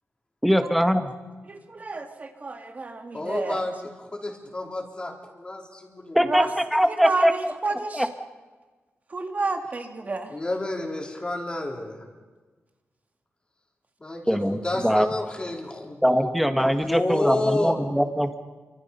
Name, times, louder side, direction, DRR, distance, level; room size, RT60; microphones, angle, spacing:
voice 1, 0.4-1.0 6.1-6.4 6.7-7.5 7.9-8.1 14.3-15.1 16.0-18.4, equal, ahead, 7 dB, 1.6 m, -22 dB
voice 2, 1.5-3.6 6.2-8.1 9.1-10.4, right 3 dB, 35° right, 5 dB, 2.2 m, -30 dB
voice 3, 3.1-6.2 10.3-12.1 14.0-16.3 16.8-17.8, left 2 dB, 25° left, 1 dB, 4.0 m, -30 dB
29.0 x 25.0 x 5.6 m, 1.3 s
wide cardioid pair, 125°, 4 cm